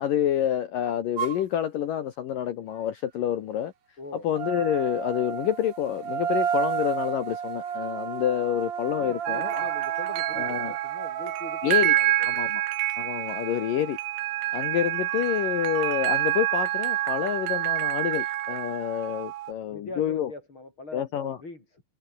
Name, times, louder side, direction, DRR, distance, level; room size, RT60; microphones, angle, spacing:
voice 1, 0.0-3.7 4.1-9.7 10.3-10.7 11.6-12.0 12.2-12.7 13.0-14.0 14.5-20.3 20.9-21.4, left 10 dB, 70° left, 2.2 m, -28 dB
sound 1, 1.2-1.4 4.3-11.8, right 7 dB, 45° right, 2.9 m, -32 dB
voice 2, 4.0-4.3 9.0-12.4 19.7-21.8, left 2 dB, 25° left, 7.1 m, -42 dB
sound 2, 9.3-19.5, right 15 dB, 75° right, 3.6 m, -27 dB
omnidirectional pair, 5.5 m